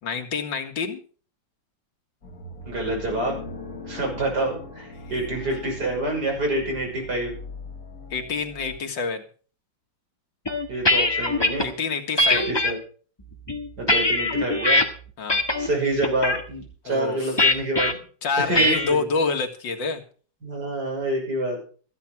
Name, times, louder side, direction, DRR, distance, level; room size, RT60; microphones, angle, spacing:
voice 1, 0.0-1.0 5.0-5.1 8.1-9.2 11.6-12.5 15.2-15.4 16.8-17.3 18.2-20.0, left 4 dB, 90° left, 5 dB, 2.5 m, -27 dB
sound 1, 2.2-8.8, left 3 dB, 50° left, 3.2 m, -40 dB
voice 2, 2.7-3.4 3.9-7.4 10.7-11.7 12.3-12.8 13.8-14.8 15.6-18.0 18.4-19.1 20.4-21.6, right 2 dB, 65° right, 0 dB, 6.9 m, -27 dB
sound 2, 10.5-11.7 12.2-12.7 13.3-14.8 15.3-15.7 16.0-16.4 17.4-17.9 18.5-18.9, left 2 dB, 15° left, 1.6 m, -21 dB
14.5 x 10.5 x 5.9 m, 0.42 s
omnidirectional pair, 1.9 m